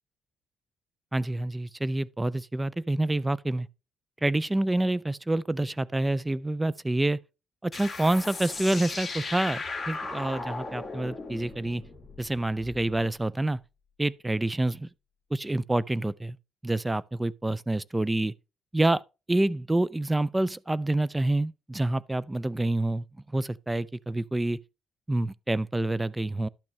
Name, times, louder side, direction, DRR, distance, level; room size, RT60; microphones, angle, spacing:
voice 1, 1.1-3.7 4.2-7.2 7.6-11.8 12.2-13.6 14.0-14.9 15.3-16.4 16.6-18.3 18.7-19.0 19.3-23.0 23.3-24.6 25.1-26.5, right 2 dB, 15° right, 0.3 m, -27 dB
sound 1, 7.7-13.0, left 3 dB, 20° left, 2.2 m, -37 dB
11.5 x 6.1 x 3.2 m
cardioid pair, 90°, 0 cm